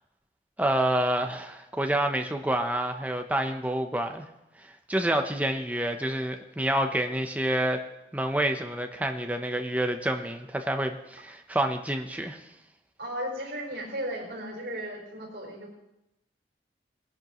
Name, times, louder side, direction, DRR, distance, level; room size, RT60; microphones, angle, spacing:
voice 1, 0.6-4.3 4.9-7.8 8.1-12.4, right 1 dB, 10° right, 5 dB, 0.8 m, -28 dB
voice 2, 13.0-15.8, equal, 65° right, -2 dB, 5.1 m, -35 dB
19.5 x 10.5 x 3.1 m, 0.89 s
head